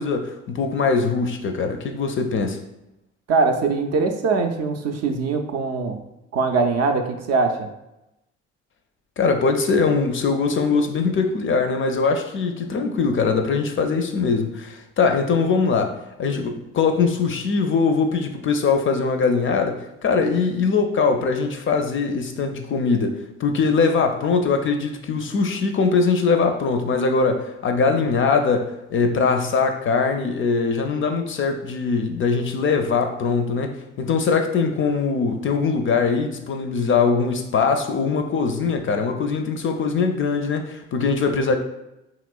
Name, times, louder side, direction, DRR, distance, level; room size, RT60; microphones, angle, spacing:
voice 1, 0.0-2.6 9.2-41.6, left 4 dB, 40° left, 5 dB, 0.4 m, -22 dB
voice 2, 3.3-6.0 6.3-7.7, right 4 dB, 50° right, 5 dB, 0.5 m, -22 dB
2.9 x 2.9 x 2.3 m, 0.91 s
hypercardioid pair, 50°, 33 cm